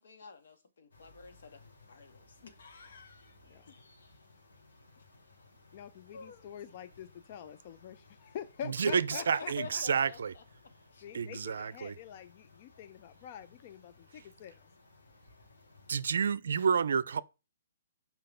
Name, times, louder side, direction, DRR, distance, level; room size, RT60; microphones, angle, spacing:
voice 1, 0.0-1.6 1.9-3.4 3.7-3.8 6.1-6.5 8.8-10.4 10.9-11.0, left 5 dB, 70° left, 1.5 m, -47 dB
sound 1, 0.9-16.0, left 3 dB, 90° left, 2.9 m, -61 dB
voice 2, 5.7-9.8 11.0-14.7, left 9 dB, 45° left, 0.5 m, -46 dB
voice 3, 8.7-10.3 11.1-11.9 15.9-17.2, right 6 dB, 75° right, 0.4 m, -30 dB
5.8 x 4.5 x 5.1 m
hypercardioid pair, 140°, 0 cm